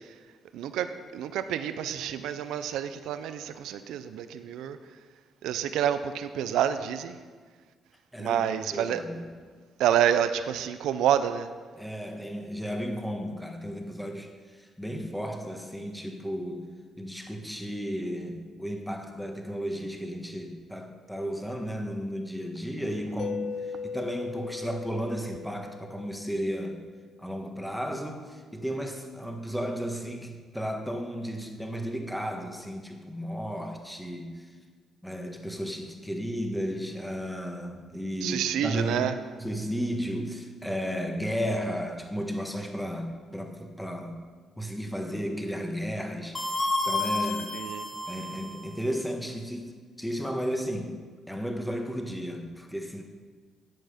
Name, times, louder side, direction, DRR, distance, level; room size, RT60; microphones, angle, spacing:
voice 1, 0.5-0.9 1.1-4.8 5.4-7.1 8.2-9.0 9.8-11.5 38.2-39.1 47.7-47.8, right 10 dB, 85° right, 11 dB, 0.5 m, -28 dB
voice 2, 8.1-9.4 11.7-26.8 27.2-34.5 35.0-39.1 39.4-44.2 44.6-47.6 48.1-51.0 51.3-53.0, equal, ahead, 4 dB, 1.3 m, -34 dB
Mallet percussion, 23.2-27.0, left 5 dB, 65° left, 0.5 m, -38 dB
sound 1, 46.3-48.7, left 2 dB, 25° left, 1.7 m, -30 dB
10.5 x 7.9 x 5.1 m, 1.5 s
cardioid pair, 90°, 0 cm